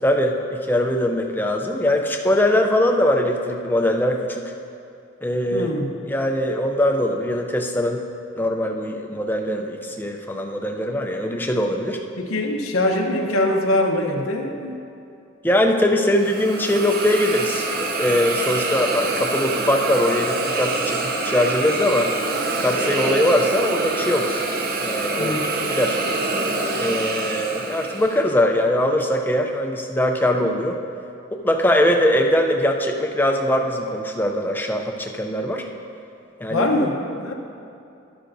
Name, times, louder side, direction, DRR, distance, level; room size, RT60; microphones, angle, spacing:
voice 1, 0.0-4.5 5.2-5.7 6.1-8.0 8.4-12.0 15.4-22.1 22.6-24.4 24.8-25.4 25.7-26.0 26.8-30.8 31.3-35.7 36.4-36.7, left 1 dB, 10° left, 3 dB, 0.5 m, -21 dB
voice 2, 5.5-5.9 12.2-14.8 25.2-25.5 36.5-37.3, left 1 dB, 85° left, 1 dB, 0.9 m, -23 dB
Hiss, 16.1-28.2, right 3 dB, 45° right, 0.7 m, -25 dB
11.0 x 11.0 x 2.6 m, 2.6 s
head